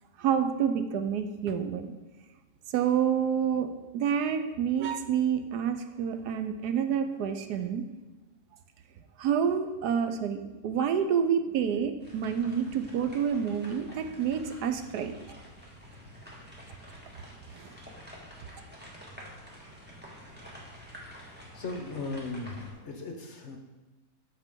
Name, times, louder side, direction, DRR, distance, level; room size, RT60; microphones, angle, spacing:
voice 1, 0.2-1.9 2.7-7.8 9.2-15.2 17.5-17.7, right 7 dB, 80° right, 8 dB, 1.2 m, -28 dB
sound 1, 12.0-22.7, equal, 5° right, 1.4 m, -48 dB
voice 2, 21.5-23.6, left 3 dB, 50° left, 3 dB, 1.1 m, -37 dB
13.5 x 4.5 x 3.7 m, 1.2 s
omnidirectional pair, 1.7 m